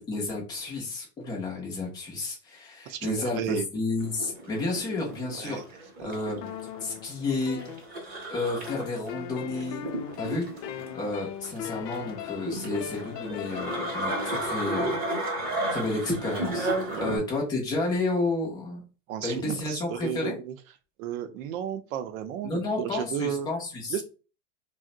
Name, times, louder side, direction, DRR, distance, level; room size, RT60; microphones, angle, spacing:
voice 1, 0.0-6.5 6.8-7.6 8.3-9.9 10.2-15.0 15.7-18.8 19.2-20.4 22.4-24.0, left 2 dB, 10° left, -2 dB, 0.4 m, -31 dB
voice 2, 2.9-3.6 5.4-5.6 6.0-6.1 16.9-17.2 19.1-20.5 21.0-23.5 23.9-24.0, right 9 dB, 55° right, 10 dB, 0.6 m, -33 dB
sound 1, 4.0-17.2, right 1 dB, 20° right, 0.7 m, -33 dB
sound 2, 6.4-8.3 8.7-14.5, left 11 dB, 75° left, 0.6 m, -39 dB
2.5 x 2.1 x 3.6 m, 0.34 s
supercardioid pair, 145°, 48 cm